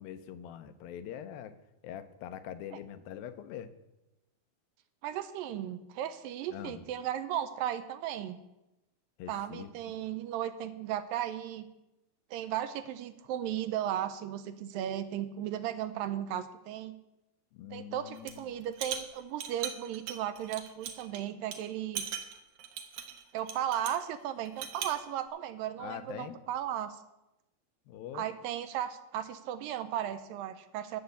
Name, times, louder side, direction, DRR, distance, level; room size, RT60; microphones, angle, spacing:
voice 1, 0.0-1.5 1.8-3.7 6.5-6.9 9.2-9.9 17.5-18.5 25.8-26.4 27.9-28.3, left 10 dB, 80° left, 10 dB, 2.5 m, -43 dB
voice 2, 5.0-8.4 9.3-11.6 12.3-17.0 17.7-22.1 23.3-27.0 28.1-31.0, right 11 dB, 80° right, 11 dB, 2.2 m, -35 dB
sound 1, 18.2-18.4 18.7-21.2 21.5-21.6 22.0-24.0 24.5-25.0, right 8 dB, 65° right, 2.3 m, -39 dB
12.0 x 7.8 x 7.0 m, 0.96 s
omnidirectional pair, 4.2 m